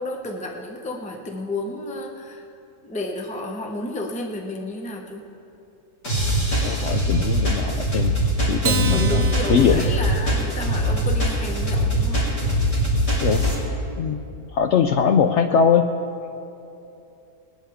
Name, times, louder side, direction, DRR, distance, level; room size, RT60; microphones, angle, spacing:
voice 1, 0.0-2.5 2.8-5.2 8.8-12.3, left 2 dB, 5° left, 2 dB, 0.7 m, -31 dB
sound 1, 6.0-13.5, equal, 50° left, 4.3 m, -22 dB
voice 2, 6.6-8.2 8.5-9.8 13.2-13.5 14.0-15.9, left 7 dB, 85° left, 6 dB, 0.6 m, -21 dB
Acoustic guitar, 8.6-11.3, right 6 dB, 70° right, 1.2 m, -30 dB
20.5 x 11.0 x 3.6 m, 2.8 s
omnidirectional pair, 1.8 m